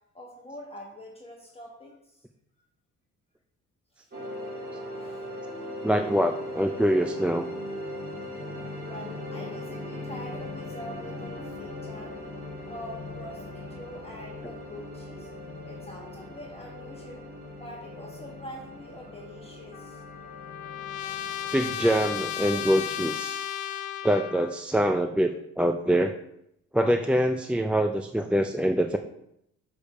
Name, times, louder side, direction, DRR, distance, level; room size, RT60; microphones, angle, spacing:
voice 1, 0.1-2.2 4.0-4.1 4.9-5.2 8.0-12.2 12.6-15.3 15.6-17.3 17.6-20.0, equal, 20° left, -2 dB, 1.2 m, -44 dB
sound 1, 4.1-23.1, left 1 dB, 30° right, 2.1 m, -39 dB
voice 2, 5.8-7.5 21.5-23.4 24.0-26.2 26.7-29.0, equal, 5° right, 5 dB, 0.3 m, -24 dB
Trumpet, 19.7-24.6, left 11 dB, 75° left, 0.5 m, -34 dB
6.5 x 3.5 x 5.3 m, 0.77 s
cardioid pair, 90°, 30 cm